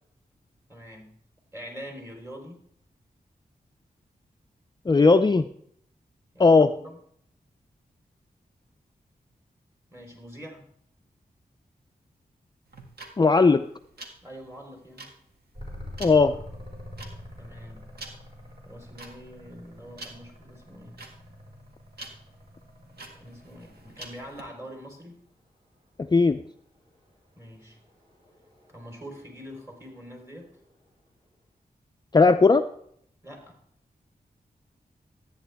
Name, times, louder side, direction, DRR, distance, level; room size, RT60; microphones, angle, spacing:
voice 1, 0.7-1.1 1.5-2.6 6.3-7.0 9.9-10.7 14.2-15.1 17.4-17.8 18.7-21.0 23.1-25.2 27.4-27.8 28.7-30.5 33.2-33.6, equal, 15° right, 0 dB, 4.0 m, -44 dB
voice 2, 4.9-5.5 6.4-6.7 13.2-13.6 16.0-16.4 26.1-26.4 32.1-32.6, left 4 dB, 30° left, 8 dB, 0.5 m, -17 dB
sound 1, 12.7-24.4, right 2 dB, 85° right, 1.9 m, -46 dB
sound 2, 15.5-24.1 26.4-30.9, left 1 dB, 30° right, 5.0 m, -46 dB
13.5 x 9.4 x 3.5 m, 0.67 s
wide cardioid pair, 75°, 16 cm